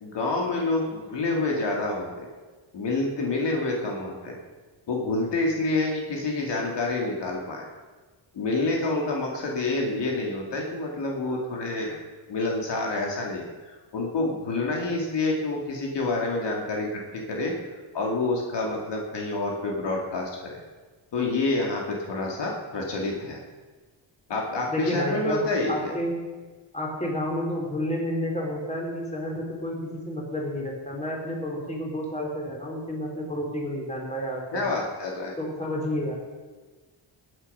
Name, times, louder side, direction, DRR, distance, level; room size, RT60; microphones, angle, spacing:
voice 1, 0.0-2.3 2.7-4.4 4.9-7.7 8.3-12.0 12.3-17.5 17.9-20.6 21.1-23.4 24.3-25.9 34.5-35.3, left 2 dB, 65° left, -1 dB, 2.4 m, -28 dB
voice 2, 24.7-26.2 26.7-34.6 35.4-36.1, left 1 dB, 15° left, -2 dB, 3.8 m, -30 dB
19.5 x 8.9 x 5.6 m, 1.3 s
cardioid pair, 125°, 45 cm